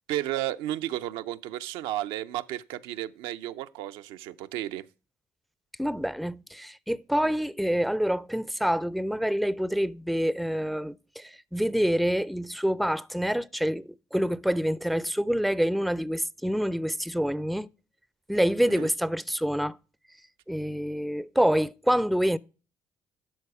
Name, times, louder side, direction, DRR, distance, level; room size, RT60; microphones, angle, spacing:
voice 1, 0.1-4.9 7.2-7.3 18.6-18.9, right 13 dB, 75° right, 0.4 m, -33 dB
voice 2, 5.8-17.7 18.3-19.8 20.5-22.4, equal, ahead, 0.4 m, -27 dB
11.5 x 4.0 x 4.8 m
hypercardioid pair, 60°, 9 cm